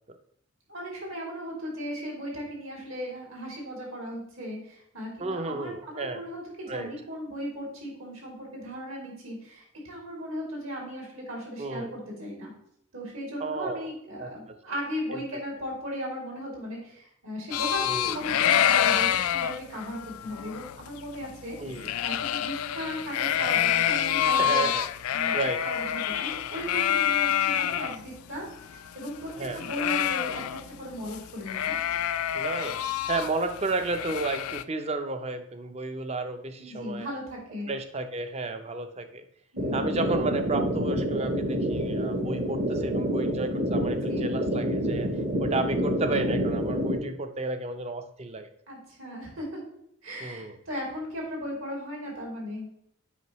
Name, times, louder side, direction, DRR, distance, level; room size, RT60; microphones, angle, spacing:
voice 1, 0.7-12.5 12.9-24.7 25.1-29.3 29.5-30.4 30.8-31.8 36.6-37.7 39.5-39.9 43.9-44.3 48.7-49.6 50.0-52.7, equal, 70° right, -2 dB, 2.8 m, -37 dB
voice 2, 5.2-6.2 6.7-6.9 11.6-12.0 13.4-13.9 14.2-14.3 15.1-15.2 17.8-18.1 21.6-21.9 24.4-24.9 25.3-25.6 29.4-29.6 32.3-37.1 37.7-39.2 39.7-45.1 45.4-48.5 50.2-50.6, right 3 dB, 30° right, 8 dB, 0.5 m, -32 dB
sound 1, 17.5-28.0 28.3-28.4 28.6-30.8 31.1-31.2 31.5-34.6, left 10 dB, 85° left, 0.3 m, -27 dB
sound 2, 39.6-47.0, equal, 50° right, 1.0 m, -27 dB
8.1 x 5.4 x 3.0 m, 0.71 s
head